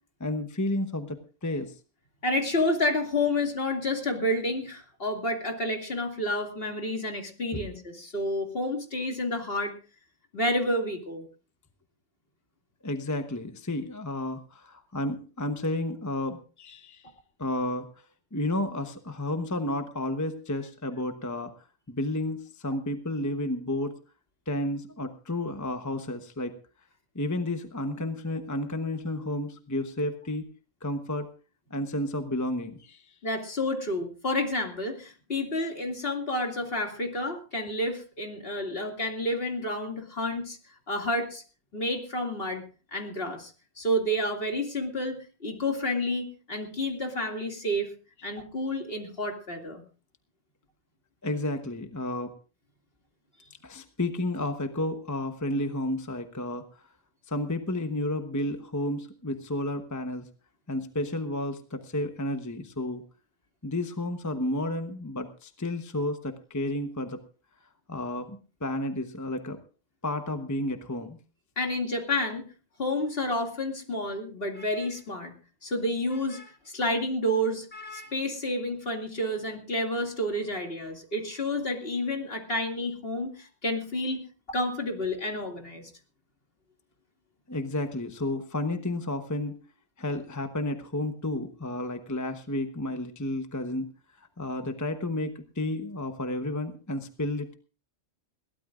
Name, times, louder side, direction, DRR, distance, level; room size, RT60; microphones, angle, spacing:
voice 1, 0.2-1.7 7.5-7.7 12.8-17.1 17.4-17.9 18.3-21.5 21.9-23.9 24.5-26.5 27.1-30.5 30.8-31.3 31.7-33.1 51.2-52.3 53.6-56.7 57.3-60.3 60.7-63.0 63.6-67.2 67.9-69.6 70.0-71.2 87.5-89.6 90.0-93.9 94.4-97.5, left 1 dB, 15° left, 7 dB, 1.0 m, -31 dB
voice 2, 2.2-9.7 10.3-11.2 33.2-40.6 40.9-41.4 41.7-42.6 42.9-47.9 48.2-49.8 71.6-72.5 72.8-75.3 75.6-85.9, left 1 dB, 55° left, 3 dB, 2.7 m, -30 dB
22.0 x 16.5 x 2.5 m, 0.35 s
omnidirectional pair, 1.2 m